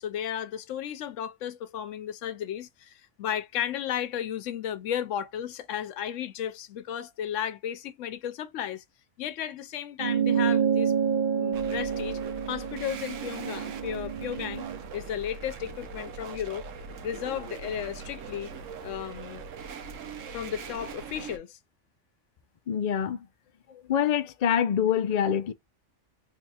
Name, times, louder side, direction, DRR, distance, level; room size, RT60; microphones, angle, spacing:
voice 1, 0.0-8.8 9.2-10.9 11.3-12.2 12.5-16.7 17.0-18.5 18.8-19.4 20.3-21.6, left 10 dB, 80° left, 0.9 m, -34 dB
sound 1, 10.0-14.8, right 7 dB, 60° right, 0.6 m, -28 dB
sound 2, 11.5-21.4, right 5 dB, 85° right, 1.1 m, -41 dB
voice 2, 22.7-23.2 23.7-25.5, left 9 dB, 55° left, 0.4 m, -25 dB
3.5 x 2.3 x 4.0 m
omnidirectional pair, 1.3 m